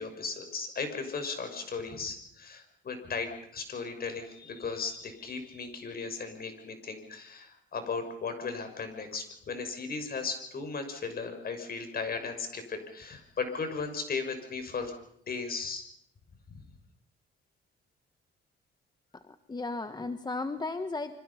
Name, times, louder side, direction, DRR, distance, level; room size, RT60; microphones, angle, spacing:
voice 1, 0.0-14.9 15.3-15.8 16.5-16.6, left 4 dB, 50° left, 7 dB, 6.3 m, -36 dB
voice 2, 19.2-21.1, left 3 dB, 20° left, 9 dB, 1.3 m, -35 dB
27.5 x 25.0 x 5.7 m, 0.71 s
cardioid pair, 90°, 20 cm